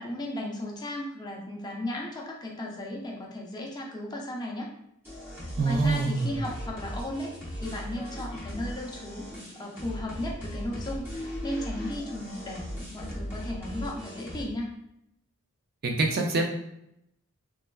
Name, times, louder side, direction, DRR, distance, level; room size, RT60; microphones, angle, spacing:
voice 1, 0.0-4.7 5.6-9.3 9.6-14.7, left 1 dB, 20° left, -1 dB, 0.5 m, -35 dB
sound 1, 5.0-14.4, equal, 10° right, 0.9 m, -38 dB
voice 2, 5.6-6.3 15.8-16.4, right 3 dB, 45° right, 2 dB, 0.4 m, -25 dB
3.2 x 2.3 x 2.3 m, 0.78 s
head